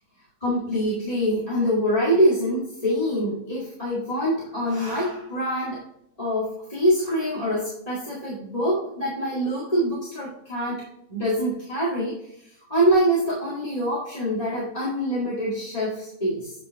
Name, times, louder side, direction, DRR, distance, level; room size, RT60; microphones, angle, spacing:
voice 1, 0.4-5.8 6.2-12.2 12.4-16.5, equal, 25° left, -8 dB, 2.1 m, -25 dB
9.0 x 4.8 x 3.6 m, 0.75 s
omnidirectional pair, 1.5 m